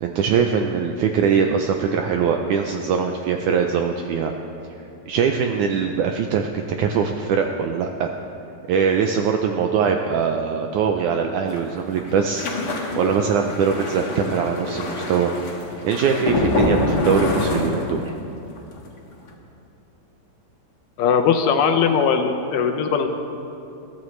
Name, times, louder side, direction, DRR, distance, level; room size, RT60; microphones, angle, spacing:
voice 1, 0.0-4.3 5.1-8.1 8.7-12.5 12.9-15.3 15.8-18.1, right 6 dB, 80° right, 4 dB, 1.8 m, -22 dB
sound 1, 11.5-18.3 18.6-18.9 19.1-19.3, left 2 dB, 40° left, 1.5 m, -25 dB
voice 2, 21.0-23.1, left 6 dB, 75° left, 6 dB, 2.2 m, -19 dB
21.5 x 14.0 x 3.2 m, 2.7 s
omnidirectional pair, 4.1 m